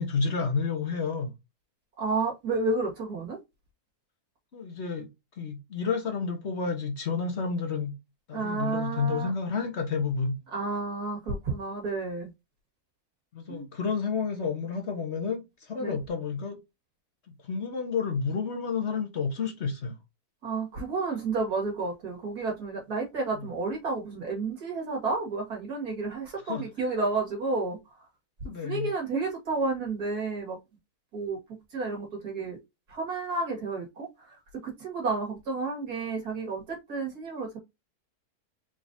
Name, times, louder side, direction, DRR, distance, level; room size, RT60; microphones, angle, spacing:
voice 1, 0.0-1.3 4.5-5.1 5.4-7.9 8.3-10.4 13.3-16.6 17.4-20.0 23.4-23.5 26.4-26.6 28.4-28.9, left 5 dB, 50° left, 1.3 m, -30 dB
voice 2, 2.0-3.4 8.3-9.3 10.5-12.3 13.5-13.7 15.8-16.0 20.4-27.8 28.4-30.6 31.1-31.4 31.7-32.6 32.9-34.4 34.6-37.6, right 3 dB, 80° right, 2.6 m, -31 dB
4.9 x 3.9 x 2.7 m
omnidirectional pair, 1.6 m